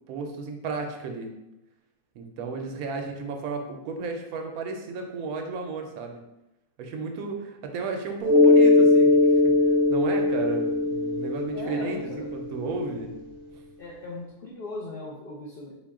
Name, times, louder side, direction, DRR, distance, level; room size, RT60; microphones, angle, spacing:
voice 1, 0.1-1.3 2.1-6.2 6.8-13.1, right 4 dB, 75° right, 4 dB, 1.0 m, -33 dB
voice 2, 2.7-3.1 11.5-12.3 13.8-15.7, left 2 dB, 65° left, -3 dB, 0.5 m, -39 dB
Mallet percussion, 8.2-12.7, left 2 dB, 55° right, 0.6 m, -20 dB
4.0 x 2.2 x 3.5 m, 0.93 s
omnidirectional pair, 1.6 m